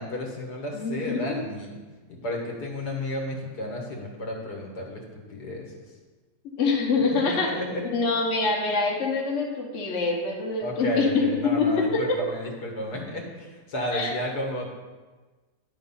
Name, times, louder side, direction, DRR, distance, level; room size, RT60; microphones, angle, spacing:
voice 1, 0.0-1.8 2.1-5.6 7.1-7.9 10.6-14.7, left 1 dB, 75° left, -1 dB, 2.0 m, -32 dB
voice 2, 0.7-1.4 6.6-7.5 7.9-12.2 13.9-14.1, left 4 dB, 50° left, -2 dB, 1.4 m, -25 dB
11.0 x 4.0 x 5.5 m, 1.3 s
omnidirectional pair, 1.8 m